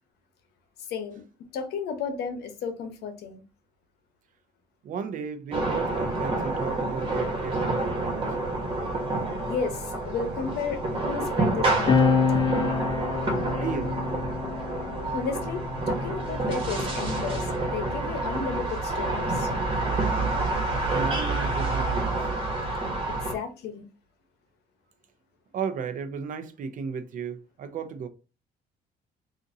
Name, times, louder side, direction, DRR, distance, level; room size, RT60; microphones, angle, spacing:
voice 1, 0.9-1.2 1.5-3.4 9.4-12.5 15.1-19.5 23.1-23.9, left 5 dB, 75° left, 0.9 m, -33 dB
voice 2, 4.8-8.3 13.5-13.9 20.9-22.3 25.5-28.1, right 6 dB, 50° right, 0.6 m, -34 dB
sound 1, 5.5-23.3, right 2 dB, 30° right, 1.3 m, -28 dB
sound 2, 11.9-18.8 19.8-21.6, left 5 dB, 30° left, 0.6 m, -29 dB
3.9 x 2.5 x 2.6 m
cardioid pair, 110°, 17 cm